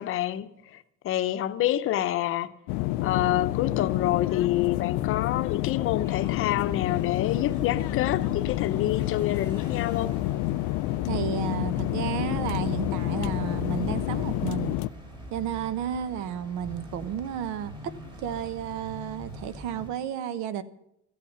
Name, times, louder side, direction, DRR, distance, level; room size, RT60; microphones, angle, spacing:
voice 1, 0.0-2.5 3.0-10.1, left 13 dB, 45° left, 0.8 m, -27 dB
sound 1, 2.7-14.9, left 17 dB, 75° left, 0.5 m, -28 dB
sound 2, 6.0-19.9, equal, 15° right, 2.7 m, -42 dB
voice 2, 11.1-14.8 15.3-17.9 18.2-20.6, right 9 dB, 65° right, 1.1 m, -32 dB
15.5 x 8.4 x 9.5 m
cardioid pair, 170°, 31 cm